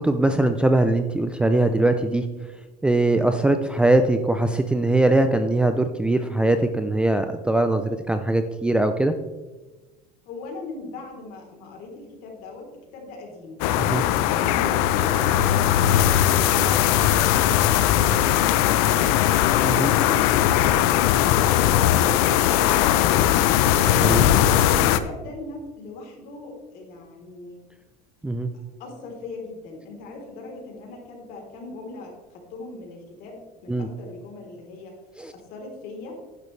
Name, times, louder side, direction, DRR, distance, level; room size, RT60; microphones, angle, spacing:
voice 1, 0.0-2.2 2.8-9.1 13.9-14.0 19.6-19.9 24.0-24.3 28.2-28.5 33.7-33.9 35.2-35.3, right 2 dB, 5° right, 8 dB, 0.4 m, -21 dB
voice 2, 10.3-12.7 12.9-13.6 14.4-19.4 24.4-27.6 28.8-34.9 35.3-36.2, left 2 dB, 55° left, 0 dB, 3.6 m, -39 dB
sound 1, 13.6-25.0, left 11 dB, 80° left, 0.7 m, -19 dB
11.0 x 10.0 x 3.2 m, 1.2 s
cardioid pair, 150°, 18 cm